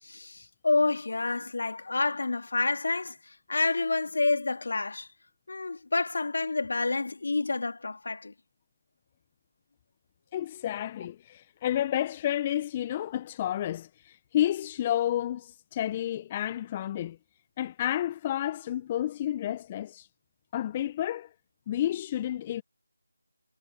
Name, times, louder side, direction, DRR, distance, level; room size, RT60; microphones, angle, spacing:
voice 1, 0.0-5.1 5.5-8.3, left 3 dB, 55° left, 3.3 m, -28 dB
voice 2, 10.3-17.2 17.6-20.1 20.5-21.3 21.7-22.6, left 12 dB, 20° left, 1.3 m, -30 dB
figure-of-eight pair, 160°, 0 cm